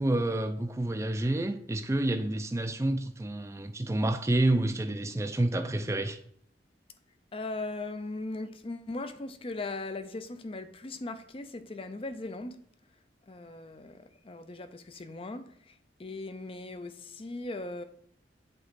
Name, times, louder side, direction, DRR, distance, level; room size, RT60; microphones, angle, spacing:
voice 1, 0.0-6.2, right 1 dB, 15° right, 0.4 m, -29 dB
voice 2, 7.3-12.6 13.3-15.7 16.0-17.8, left 2 dB, 30° left, 0.5 m, -39 dB
7.9 x 3.1 x 5.8 m
head